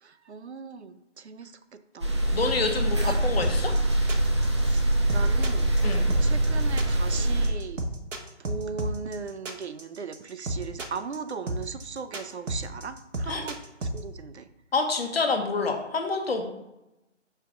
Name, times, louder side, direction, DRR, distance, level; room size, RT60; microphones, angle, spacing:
voice 1, 0.0-2.1 3.0-3.2 4.6-5.7 6.2-7.8 8.4-14.5, right 5 dB, 60° right, 11 dB, 0.6 m, -38 dB
sound 1, 2.0-7.5, right 1 dB, 25° right, 0.6 m, -24 dB
voice 2, 2.3-3.7 5.8-6.1 13.3-13.4 14.7-16.4, left 4 dB, 55° left, 4 dB, 1.2 m, -27 dB
sound 2, 3.4-14.0, right 1 dB, 85° right, 1.2 m, -32 dB
5.7 x 3.6 x 5.9 m, 0.94 s
figure-of-eight pair, 165°, 37 cm